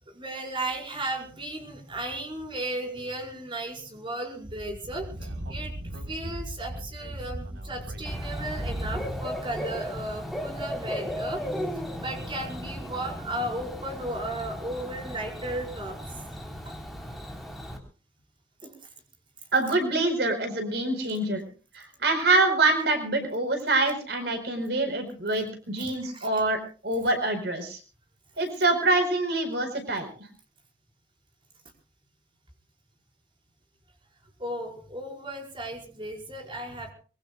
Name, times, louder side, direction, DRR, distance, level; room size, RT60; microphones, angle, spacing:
voice 1, 0.1-5.7 6.1-11.4 12.0-16.0 16.6-16.8 18.6-18.7 25.8-26.4 34.4-36.9, right 1 dB, 30° right, 1 dB, 5.3 m, -35 dB
Speech / Wind, 4.4-9.3, right 1 dB, 85° right, 4.2 m, -37 dB
Bird / Cricket, 8.1-17.8, equal, ahead, 3.8 m, -36 dB
voice 2, 19.5-21.4 21.7-27.8 28.4-30.1, right 2 dB, 65° right, 6 dB, 4.5 m, -25 dB
24.5 x 22.5 x 2.4 m, 0.38 s
head